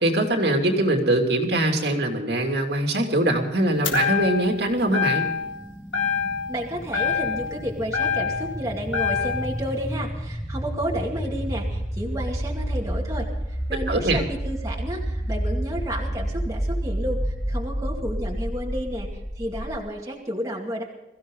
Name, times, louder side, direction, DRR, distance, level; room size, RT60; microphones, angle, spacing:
voice 1, 0.0-5.3 13.9-14.2, right 1 dB, 60° right, 2 dB, 2.8 m, -22 dB
sound 1, 3.8-4.6 4.9-5.6 5.9-6.6 6.9-8.6 8.9-9.6, left 6 dB, 85° left, 3.4 m, -25 dB
sound 2, 4.6-19.8, equal, 15° left, 3.9 m, -30 dB
voice 2, 6.5-20.8, equal, 20° right, -2 dB, 2.3 m, -31 dB
22.5 x 15.5 x 3.9 m, 0.96 s
head